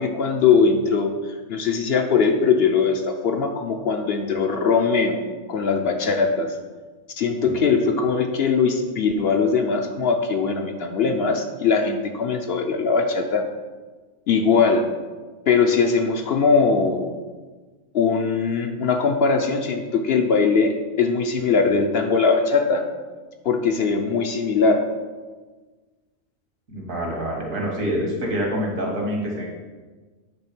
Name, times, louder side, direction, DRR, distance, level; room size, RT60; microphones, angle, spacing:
voice 1, 0.0-5.2 5.5-6.5 7.2-13.4 14.3-14.9 15.5-17.1 17.9-22.8 23.4-24.8, left 5 dB, 60° left, 4 dB, 0.8 m, -21 dB
voice 2, 26.7-29.5, equal, 80° right, -2 dB, 2.1 m, -26 dB
8.9 x 3.6 x 5.9 m, 1.4 s
omnidirectional pair, 1.3 m